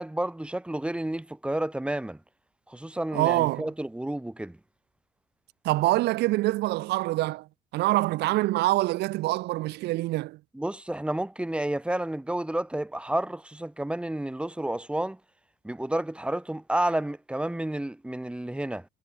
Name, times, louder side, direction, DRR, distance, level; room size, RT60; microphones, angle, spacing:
voice 1, 0.0-2.2 2.7-4.6 10.5-15.2 15.6-18.9, right 1 dB, 5° right, 6.0 m, -30 dB
voice 2, 3.1-3.7 5.6-7.5 7.7-10.4, right 18 dB, 85° right, 2.0 m, -25 dB
cardioid pair, 110°, 17 cm